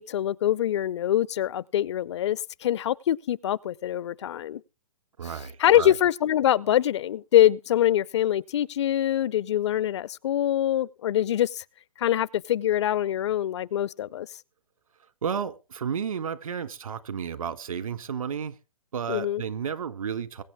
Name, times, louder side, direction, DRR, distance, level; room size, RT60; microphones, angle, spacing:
voice 1, 0.0-4.6 5.6-11.6 12.0-14.3 19.1-19.4, left 12 dB, 50° left, 0.6 m, -24 dB
voice 2, 5.2-6.0 15.2-18.6 18.9-20.4, right 7 dB, 75° right, 1.9 m, -32 dB
22.0 x 8.9 x 3.6 m
hypercardioid pair, 140°, 18 cm